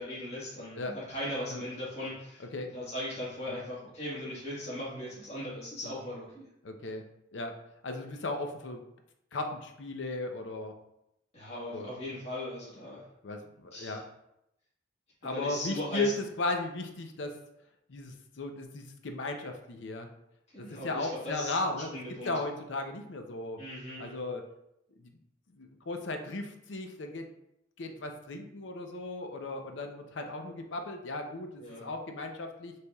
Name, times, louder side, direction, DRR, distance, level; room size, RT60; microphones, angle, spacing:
voice 1, 0.0-6.4 11.3-13.0 13.7-14.0 15.2-16.1 20.5-22.3 23.6-24.2 31.6-31.9, left 1 dB, 35° left, -7 dB, 1.4 m, -39 dB
voice 2, 6.6-7.0 7.3-7.5 7.8-8.8 9.3-10.7 11.7-11.9 13.2-14.0 15.2-16.1 16.4-17.4 17.9-20.1 20.6-22.0 22.2-23.6 24.0-24.4 25.0-25.2 25.5-27.3 27.8-32.7, left 2 dB, 75° left, 5 dB, 0.6 m, -36 dB
6.6 x 3.3 x 2.3 m, 0.82 s
head